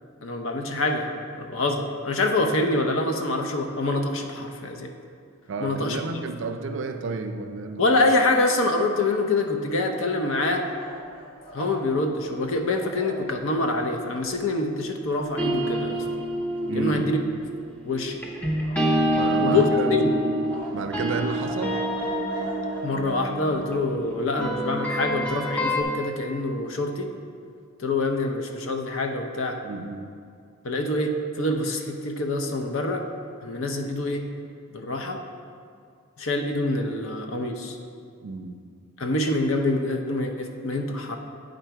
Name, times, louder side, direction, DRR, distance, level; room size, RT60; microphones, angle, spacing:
voice 1, 0.2-1.1 1.4-4.9 5.6-6.0 7.8-10.6 11.5-16.0 16.7-17.2 17.8-18.2 19.4-20.2 22.8-27.1 27.8-29.6 30.6-33.0 33.4-34.2 34.7-35.2 36.2-37.8 39.0-41.2, left 2 dB, 65° left, 3 dB, 0.6 m, -25 dB
voice 2, 5.5-7.8 16.7-17.1 19.2-20.0 20.7-21.8 29.6-30.1 38.2-38.6, right 3 dB, 55° right, 7 dB, 0.4 m, -31 dB
sound 1, 10.6-13.2 18.6-19.5 20.5-23.2, right 2 dB, 85° left, 1.9 m, -38 dB
sound 2, 15.4-25.8, right 1 dB, 5° left, 0.5 m, -27 dB
8.9 x 3.9 x 4.6 m, 2.3 s
head